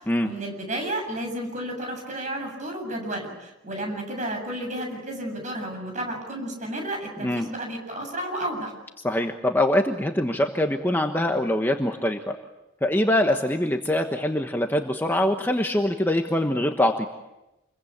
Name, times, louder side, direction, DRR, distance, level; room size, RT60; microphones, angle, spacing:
voice 1, 0.2-8.7, right 1 dB, 35° right, 3 dB, 7.6 m, -32 dB
voice 2, 9.0-12.4 12.8-17.1, left 1 dB, 10° left, 4 dB, 1.2 m, -23 dB
29.0 x 23.0 x 8.7 m, 0.96 s
head